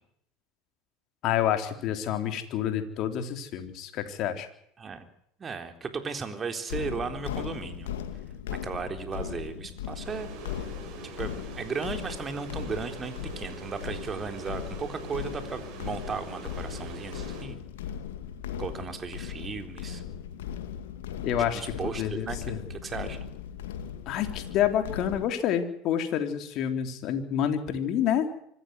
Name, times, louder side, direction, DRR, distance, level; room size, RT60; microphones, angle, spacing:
voice 1, 1.2-4.5 21.2-22.6 24.1-28.3, left 10 dB, 55° left, 7 dB, 3.7 m, -28 dB
voice 2, 5.4-7.9 8.5-10.3 11.0-17.6 18.6-20.0 21.5-23.3, right 5 dB, 30° right, 7 dB, 3.8 m, -36 dB
sound 1, 6.7-25.3, left 9 dB, 80° left, 2.4 m, -38 dB
sound 2, 10.0-17.4, right 4 dB, 60° right, 7.0 m, -44 dB
25.0 x 14.0 x 9.6 m, 0.72 s
hypercardioid pair, 80°, 0 cm